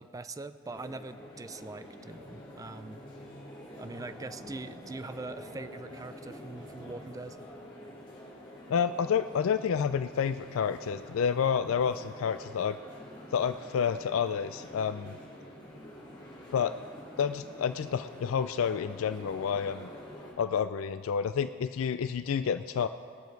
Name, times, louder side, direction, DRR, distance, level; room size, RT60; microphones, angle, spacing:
voice 1, 0.0-3.0 3.8-7.4, right 3 dB, 15° right, 12 dB, 0.4 m, -42 dB
sound 1, 0.6-20.3, left 1 dB, 25° left, 3.0 m, -47 dB
voice 2, 8.7-12.8 13.3-15.1 16.5-16.7 17.2-19.9 20.4-22.9, left 7 dB, 75° left, 12 dB, 0.4 m, -29 dB
21.0 x 7.0 x 4.6 m, 2.2 s
head